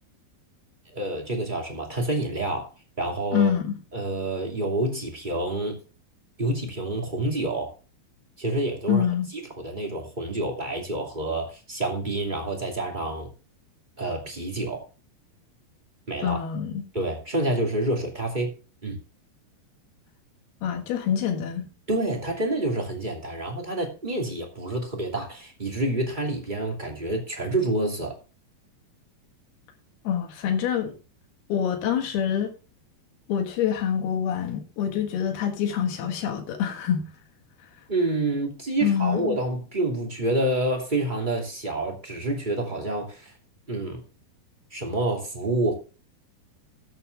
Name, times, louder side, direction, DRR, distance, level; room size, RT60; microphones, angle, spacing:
voice 1, 0.9-2.7 3.0-3.5 3.9-5.8 6.4-7.7 8.4-9.0 9.3-13.3 14.0-14.8 16.1-16.4 16.9-18.5 18.8-19.0 21.9-28.2 37.9-43.3 43.7-44.0 44.7-45.7, right 2 dB, 15° right, 1.9 m, -28 dB
voice 2, 3.3-3.8 8.9-9.3 16.2-16.8 20.6-21.7 30.1-30.9 31.5-32.5 33.3-37.1 38.8-39.4, left 8 dB, 90° left, 3.6 m, -26 dB
14.0 x 8.2 x 3.4 m
omnidirectional pair, 4.4 m